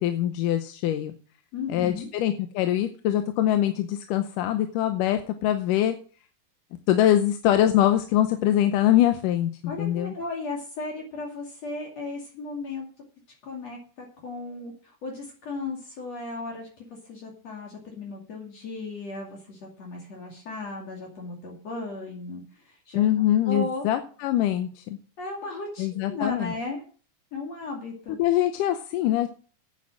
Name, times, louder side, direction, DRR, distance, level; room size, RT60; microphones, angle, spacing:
voice 1, 0.0-1.1 1.7-6.0 6.9-9.5 9.8-10.1 23.0-25.0 25.8-26.5 28.2-29.3, left 12 dB, 80° left, 8 dB, 2.4 m, -23 dB
voice 2, 1.5-2.1 9.7-12.9 13.4-23.0 23.4-23.8 25.2-26.8 27.3-28.2, left 3 dB, 55° left, 0 dB, 3.4 m, -35 dB
9.3 x 8.6 x 7.4 m, 0.41 s
omnidirectional pair, 3.8 m